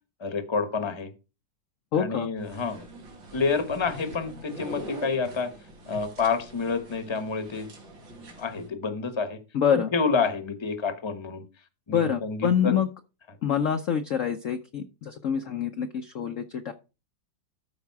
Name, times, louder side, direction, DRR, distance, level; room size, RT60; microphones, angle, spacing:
voice 1, 0.2-1.1 2.0-2.8 3.3-5.5 5.9-7.7 8.4-9.4 9.7-11.4 11.9-12.8, left 4 dB, 20° left, 9 dB, 0.9 m, -28 dB
voice 2, 1.9-2.3 9.5-9.9 11.9-12.9 13.4-16.7, left 8 dB, 60° left, 7 dB, 0.9 m, -26 dB
sound 1, 2.4-8.7, right 1 dB, 85° right, 3.0 m, -43 dB
13.0 x 5.1 x 4.7 m, 0.31 s
omnidirectional pair, 2.0 m